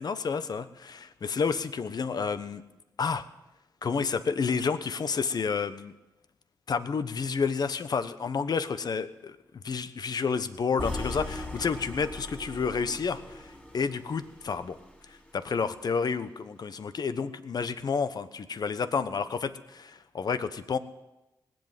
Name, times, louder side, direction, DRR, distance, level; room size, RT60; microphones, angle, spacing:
voice 1, 0.0-2.6 3.0-3.2 3.8-5.9 6.7-9.4 9.6-14.8 15.1-20.8, left 5 dB, 60° left, 12 dB, 1.0 m, -30 dB
sound 1, 10.8-14.9, left 2 dB, 15° left, 3.1 m, -39 dB
19.0 x 8.0 x 9.1 m, 0.99 s
cardioid pair, 55°, 8 cm